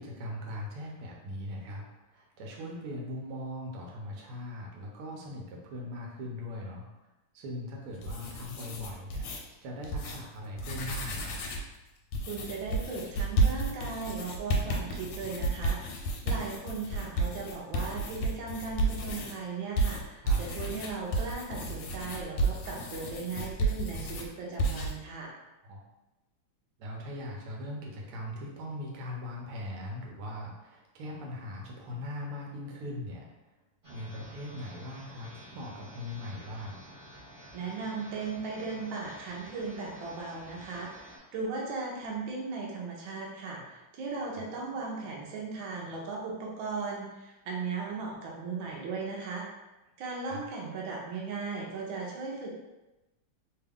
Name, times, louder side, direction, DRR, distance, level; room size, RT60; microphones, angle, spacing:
voice 1, 0.0-6.9 7.3-9.3 9.6-11.4 20.2-20.4 25.6-25.8 26.8-33.3 33.9-36.8 44.3-44.4 50.2-50.4, left 1 dB, 90° right, -1 dB, 1.6 m, -40 dB
sound 1, 7.9-9.4 9.8-10.2 10.5-11.7 12.1-19.3 19.8-24.3 24.6-24.9, right 2 dB, 85° left, 1.5 m, -31 dB
voice 2, 12.3-25.3 37.5-49.4 50.0-52.6, right 4 dB, 75° right, -3 dB, 1.4 m, -37 dB
sound 2, 33.8-41.2, equal, 50° right, 0.3 m, -50 dB
3.6 x 2.3 x 3.4 m, 1.0 s
omnidirectional pair, 2.3 m